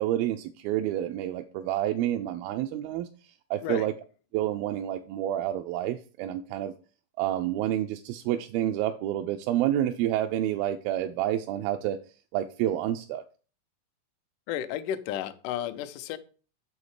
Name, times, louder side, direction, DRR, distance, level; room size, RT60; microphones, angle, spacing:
voice 1, 0.0-3.1 3.5-3.9 4.3-6.7 7.2-12.0 12.3-13.2, right 12 dB, 90° right, 2.4 m, -29 dB
voice 2, 14.5-16.2, left 11 dB, 75° left, 2.0 m, -33 dB
7.2 x 6.3 x 4.8 m
omnidirectional pair, 4.1 m